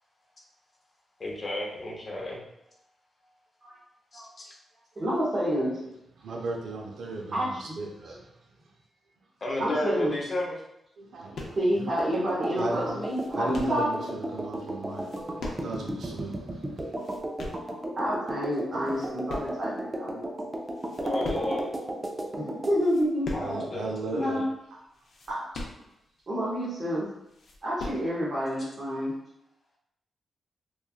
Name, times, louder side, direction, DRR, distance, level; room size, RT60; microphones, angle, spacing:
voice 1, 1.2-2.4 4.1-4.4 9.4-10.5 21.0-21.6 23.3-24.4, left 1 dB, 40° left, -3 dB, 0.7 m, -32 dB
voice 2, 5.0-5.8 7.3-7.8 9.6-10.2 11.6-13.9 18.0-20.3 22.4-23.3 24.1-24.4 25.3-25.4 26.3-27.1 27.6-29.1, equal, 40° right, -8 dB, 0.7 m, -28 dB
voice 3, 5.6-5.9 6.2-8.3 11.0-11.9 12.6-13.0 13.3-17.0 23.4-24.4, right 2 dB, 80° right, 0 dB, 0.5 m, -36 dB
sound 1, 11.3-11.8 12.3-12.4 12.7-13.9 14.9-15.9 16.2-16.3 16.8-17.7 18.3-18.6 18.8-19.9 20.2-20.3 20.6-21.7 22.2-22.3 22.8-23.6 23.9-24.0 24.4-24.5 24.9-26.2 26.7-26.8 27.1-28.1, left 2 dB, 80° left, 0.5 m, -40 dB
sound 2, 12.0-22.8, right 1 dB, 20° right, 0.4 m, -35 dB
3.0 x 2.3 x 2.3 m, 0.81 s
wide cardioid pair, 120°, 0 cm